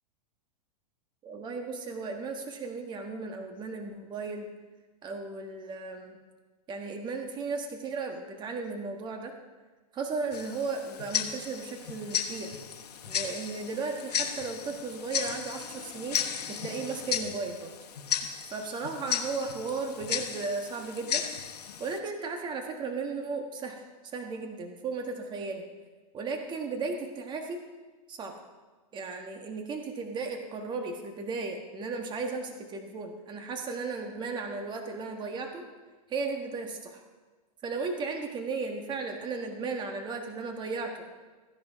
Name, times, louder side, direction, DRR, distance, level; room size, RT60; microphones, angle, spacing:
voice 1, 1.2-4.5 5.0-6.2 6.7-9.4 9.9-12.6 13.1-17.7 18.5-21.2 21.8-25.6 26.1-27.6 28.1-28.3 28.9-35.7 36.1-37.0 37.6-41.0, right 4 dB, 25° right, 3 dB, 1.5 m, -35 dB
Tick-tock, 10.3-22.0, left 8 dB, 80° left, 1.2 m, -35 dB
15.0 x 10.5 x 3.7 m, 1.3 s
hypercardioid pair, 130°, 20 cm